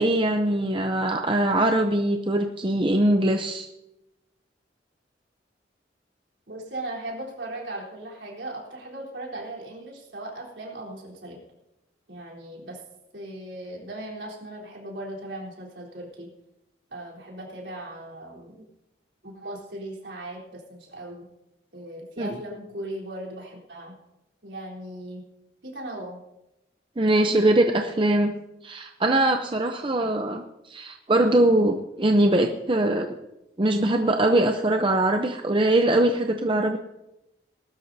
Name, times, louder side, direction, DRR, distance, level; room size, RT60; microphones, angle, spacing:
voice 1, 0.0-3.7 22.2-22.3 27.0-28.3 28.6-33.1 33.6-36.8, right 1 dB, 25° right, 5 dB, 0.6 m, -22 dB
voice 2, 6.5-11.4 12.1-12.8 13.1-16.3 16.9-18.7 19.2-21.3 21.7-23.9 24.4-25.2 25.6-26.2 27.2-27.6, right 1 dB, 70° right, -3 dB, 3.8 m, -38 dB
20.0 x 12.5 x 2.7 m, 0.93 s
head